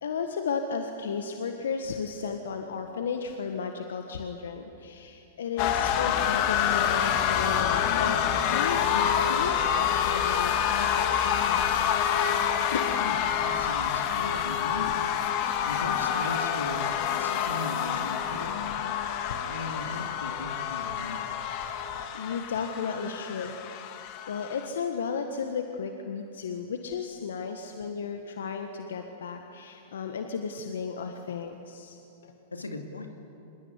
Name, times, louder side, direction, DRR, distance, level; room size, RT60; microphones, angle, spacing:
voice 1, 0.0-11.9 12.7-12.9 17.7-18.0 22.1-23.5 24.0-32.3, left 6 dB, 70° left, 5 dB, 1.6 m, -34 dB
sound 1, 5.6-24.7, left 9 dB, 45° left, 2.1 m, -27 dB
voice 2, 12.9-15.0 15.6-18.6 19.5-21.3 32.5-33.1, left 3 dB, 90° left, 4 dB, 2.5 m, -38 dB
25.0 x 20.5 x 9.7 m, 2.9 s
hypercardioid pair, 105°, 0 cm